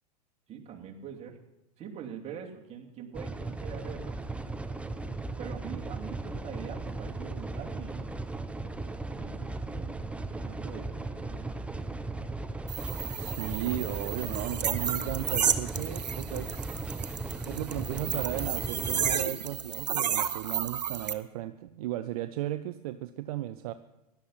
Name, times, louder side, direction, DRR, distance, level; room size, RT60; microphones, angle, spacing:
voice 1, 0.5-1.4 1.8-4.2 5.4-8.2 9.2-11.7, right 7 dB, 30° right, 0 dB, 2.8 m, -44 dB
sound 1, 3.1-19.3, right 2 dB, 5° right, 0.8 m, -37 dB
sound 2, 12.7-21.1, right 8 dB, 85° right, 0.9 m, -32 dB
voice 2, 13.2-16.7 17.4-23.7, right 14 dB, 60° right, 11 dB, 0.7 m, -35 dB
16.5 x 12.0 x 5.8 m, 0.94 s
hypercardioid pair, 100°, 21 cm